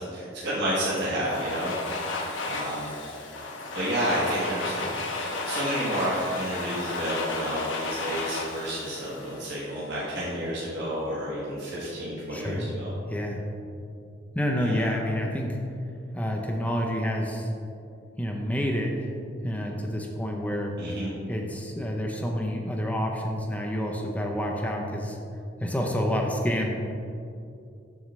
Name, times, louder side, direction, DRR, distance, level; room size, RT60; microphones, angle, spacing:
voice 1, 0.0-1.7 2.0-2.9 3.7-12.9 14.6-14.9 20.8-21.1, right 1 dB, 60° right, -8 dB, 1.2 m, -30 dB
Domestic sounds home sounds, 1.0-9.9, left 3 dB, 80° left, 0.8 m, -33 dB
voice 2, 12.3-12.7 13.1-13.4 14.3-15.6 16.1-17.5 18.2-19.1 19.4-20.7 21.3-25.2 25.6-26.7, equal, 10° left, 1 dB, 0.5 m, -28 dB
7.2 x 6.3 x 3.1 m, 2.6 s
head